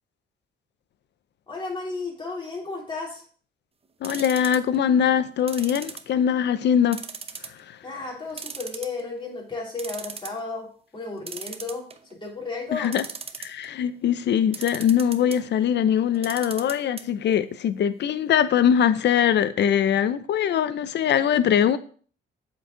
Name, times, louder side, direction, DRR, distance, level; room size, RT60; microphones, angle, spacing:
voice 1, 1.5-3.2 7.8-12.9, left 3 dB, 25° left, 3.0 m, -33 dB
voice 2, 4.0-7.0 12.7-13.0 13.4-21.8, left 9 dB, 60° left, 0.6 m, -22 dB
sound 1, 4.0-4.8 5.5-6.4 6.9-7.6 7.9-8.0 8.4-9.2 9.5-9.6 9.8-10.4 11.3-12.1 12.8-13.7 14.5-15.4 16.1-17.0 17.3-17.4 17.7-17.8, right 5 dB, 30° right, 0.7 m, -37 dB
7.7 x 4.6 x 3.8 m
cardioid pair, 90°, 20 cm